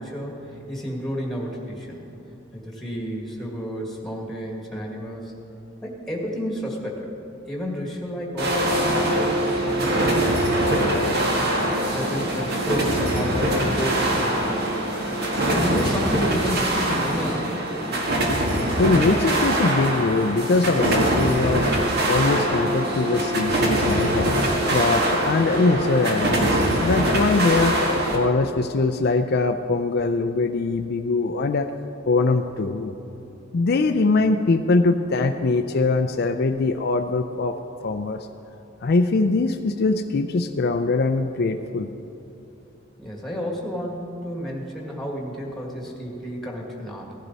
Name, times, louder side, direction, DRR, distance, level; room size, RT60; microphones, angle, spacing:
voice 1, 0.0-2.0 2.5-5.3 5.8-7.1 7.5-14.7 15.5-17.9 43.0-47.1, equal, ahead, -1 dB, 1.8 m, -31 dB
sound 1, 8.4-28.2, right 1 dB, 55° right, 1.7 m, -23 dB
voice 2, 18.8-21.7 22.1-24.3 24.7-27.8 28.1-31.7 32.1-33.0 33.5-37.6 37.8-38.2 38.8-41.9, left 3 dB, 55° left, 6 dB, 0.4 m, -22 dB
16.0 x 11.0 x 4.1 m, 3.0 s
head